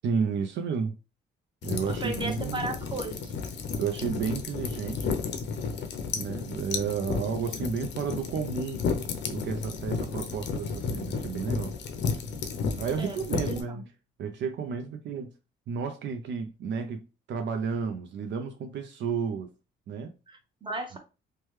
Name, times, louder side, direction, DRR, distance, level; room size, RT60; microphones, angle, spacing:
voice 1, 0.0-1.0 1.6-2.7 3.8-5.2 6.1-8.8 9.3-11.7 12.8-13.8 14.2-15.3 15.7-17.0 17.3-19.5 19.9-20.1 20.9-21.0, right 6 dB, 65° right, 0.5 m, -32 dB
sound 1, 1.6-13.6, left 5 dB, 65° left, 0.6 m, -33 dB
voice 2, 2.0-3.3 13.0-13.7 20.3-21.0, right 2 dB, 25° right, 0.9 m, -35 dB
3.1 x 2.2 x 3.1 m
cardioid pair, 90°, 20 cm